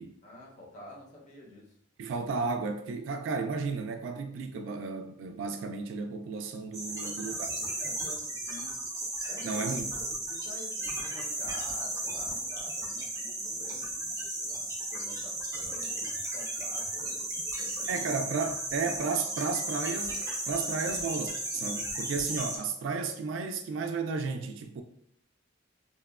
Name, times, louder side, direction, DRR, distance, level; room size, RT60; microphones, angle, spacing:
voice 1, 0.2-1.7 6.9-8.9 9.2-18.1, left 1 dB, 40° left, 0.6 m, -49 dB
voice 2, 2.0-7.5 9.4-9.9 17.9-24.8, right 4 dB, 75° right, 0.3 m, -33 dB
sound 1, 6.7-22.6, right 2 dB, 15° right, 0.5 m, -35 dB
2.8 x 2.1 x 2.3 m
head